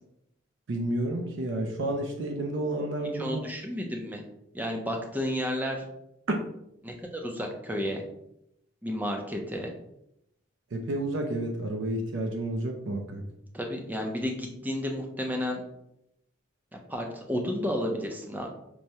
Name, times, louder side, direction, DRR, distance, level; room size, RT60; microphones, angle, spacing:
voice 1, 0.7-3.4 10.7-13.2, right 1 dB, 70° right, 3 dB, 0.5 m, -30 dB
voice 2, 3.1-4.2 4.5-5.8 6.8-8.0 8.8-9.7 13.5-15.6 16.7-18.5, equal, 10° right, 2 dB, 0.4 m, -32 dB
4.6 x 2.1 x 2.7 m, 0.80 s
head